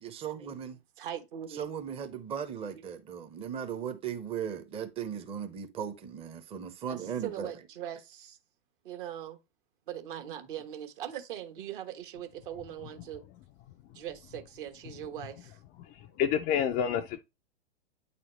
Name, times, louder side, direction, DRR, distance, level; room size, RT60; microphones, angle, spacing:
voice 1, 0.0-0.8 1.6-7.5, right 8 dB, 20° right, 0.7 m, -37 dB
voice 2, 1.0-1.7 6.9-8.4 8.8-9.4 9.9-13.2 13.9-15.6, right 11 dB, 55° right, 1.3 m, -41 dB
voice 3, 16.2-17.2, left 8 dB, 25° left, 0.4 m, -27 dB
8.7 x 4.2 x 3.1 m
figure-of-eight pair, 100°, 32 cm